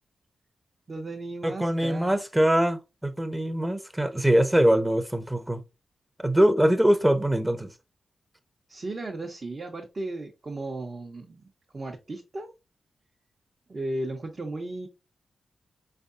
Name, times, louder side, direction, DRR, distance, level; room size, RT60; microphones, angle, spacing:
voice 1, 0.9-2.2 4.6-4.8 8.7-12.5 13.7-14.9, right 2 dB, 45° right, 0.9 m, -35 dB
voice 2, 1.4-5.6 6.2-7.7, right 1 dB, 10° right, 0.8 m, -23 dB
4.6 x 3.4 x 2.6 m
cardioid pair, 55°, 0 cm